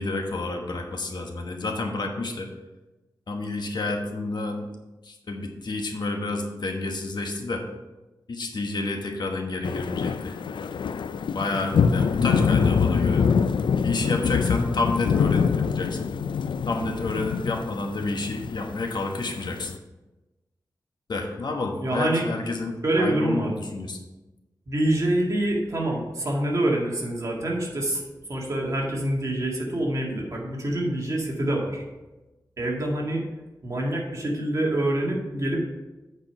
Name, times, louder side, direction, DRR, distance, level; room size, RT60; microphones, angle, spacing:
voice 1, 0.0-2.5 3.3-4.7 5.0-7.6 8.3-10.4 11.3-13.3 13.8-16.1 16.7-19.7 21.1-24.0, left 2 dB, 65° left, 3 dB, 1.2 m, -30 dB
sound 1, 9.6-19.8, left 6 dB, 85° left, 0.4 m, -25 dB
voice 2, 21.8-22.3 22.8-23.5 24.7-28.0 28.3-31.8 32.6-33.2 33.6-35.7, right 1 dB, 40° right, -2 dB, 1.9 m, -26 dB
8.2 x 4.8 x 5.6 m, 1.1 s
wide cardioid pair, 120°, 8 cm